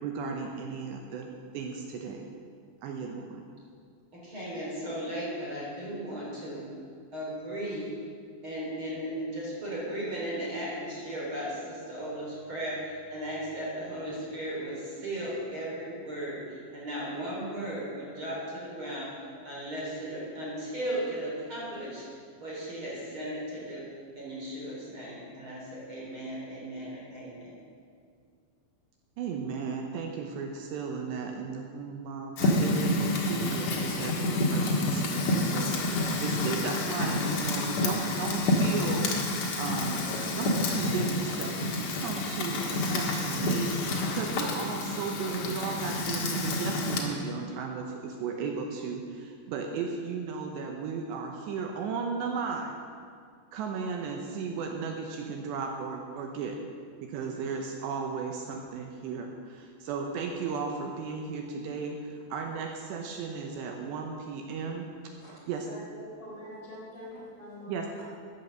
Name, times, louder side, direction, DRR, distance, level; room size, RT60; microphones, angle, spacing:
voice 1, 0.0-1.3 1.5-2.3 2.8-3.4 29.2-39.1 39.6-40.1 40.4-52.8 53.5-56.6 57.0-65.1 65.5-65.7 67.7-68.0, right 5 dB, 75° right, 2 dB, 2.9 m, -35 dB
voice 2, 4.1-6.6 7.1-7.9 8.4-19.1 19.4-22.1 22.4-23.8 24.1-27.5, right 1 dB, 30° right, -5 dB, 3.9 m, -36 dB
Fire, 32.4-47.0, left 2 dB, 55° left, 2.3 m, -29 dB
voice 3, 65.6-68.0, left 1 dB, 30° left, -6 dB, 4.3 m, -44 dB
14.0 x 10.5 x 6.6 m, 2.2 s
omnidirectional pair, 5.3 m